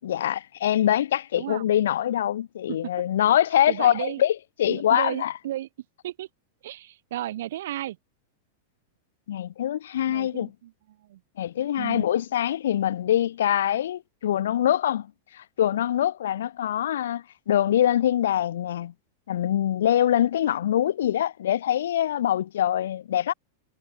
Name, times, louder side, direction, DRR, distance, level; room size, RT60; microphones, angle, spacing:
voice 1, 0.0-5.3 9.3-10.5 11.4-15.1 15.3-18.9 19.3-23.3, left 11 dB, 75° left, 7.6 m, -24 dB
voice 2, 1.4-1.7 2.7-2.8 3.7-4.2 4.7-5.7 6.0-6.3 6.6-8.0 10.1-10.7 11.0-11.2 11.8-12.1, right 13 dB, 70° right, 5.7 m, -33 dB
hypercardioid pair, 100°, 0 cm